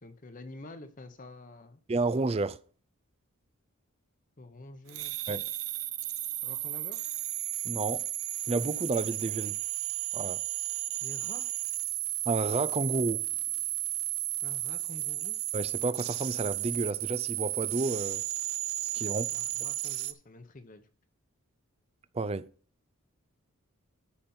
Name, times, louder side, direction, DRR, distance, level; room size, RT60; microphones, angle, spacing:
voice 1, 0.0-1.8 4.4-5.1 6.4-7.0 11.0-11.5 14.4-15.4 19.1-20.9, left 2 dB, 35° left, 0.8 m, -48 dB
voice 2, 1.9-2.6 5.3-5.5 7.6-8.0 8.5-9.6 10.1-10.4 12.3-13.3 15.5-18.2 18.9-19.3 22.1-22.5, right 3 dB, 25° right, 0.4 m, -31 dB
sound 1, 4.9-20.1, right 15 dB, 70° right, 0.6 m, -34 dB
13.0 x 5.3 x 4.4 m
head